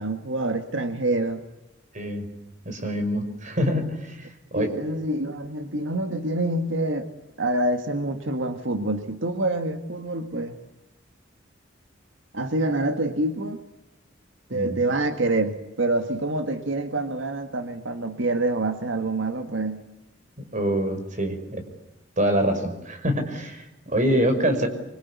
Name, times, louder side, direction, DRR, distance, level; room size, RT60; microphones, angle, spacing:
voice 1, 0.0-1.4 4.6-7.1 7.4-10.6 12.3-13.6 14.5-19.8 24.0-24.6, right 2 dB, 90° right, 6 dB, 1.8 m, -26 dB
voice 2, 1.9-2.3 2.6-4.7 14.5-14.8 20.5-21.6 22.2-24.7, equal, 40° right, 6 dB, 5.6 m, -25 dB
25.5 x 25.0 x 8.3 m, 0.92 s
head